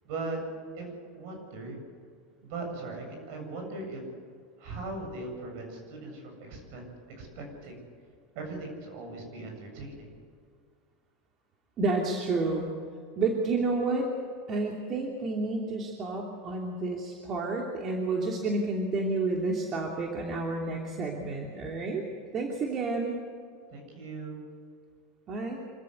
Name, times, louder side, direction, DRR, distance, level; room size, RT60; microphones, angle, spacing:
voice 1, 0.0-0.4 0.7-1.8 2.4-4.0 4.6-7.8 8.3-10.1 23.7-24.4, right 3 dB, 65° right, 3 dB, 7.8 m, -39 dB
voice 2, 11.8-12.7 13.2-14.1 14.5-22.0 22.3-23.2 25.3-25.6, right 3 dB, 40° right, 0 dB, 3.1 m, -30 dB
26.5 x 14.5 x 8.2 m, 2.1 s
hypercardioid pair, 105°, 0 cm